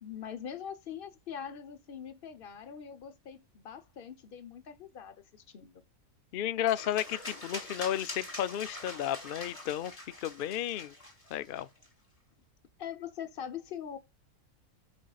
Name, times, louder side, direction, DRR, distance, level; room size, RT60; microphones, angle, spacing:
voice 1, 0.0-5.8 12.8-14.0, left 8 dB, 45° left, 0.9 m, -43 dB
voice 2, 6.3-10.9 11.3-11.7, left 11 dB, 90° left, 0.4 m, -33 dB
sound 1, 6.7-11.9, left 1 dB, 25° left, 2.2 m, -44 dB
9.9 x 5.3 x 2.4 m
omnidirectional pair, 1.6 m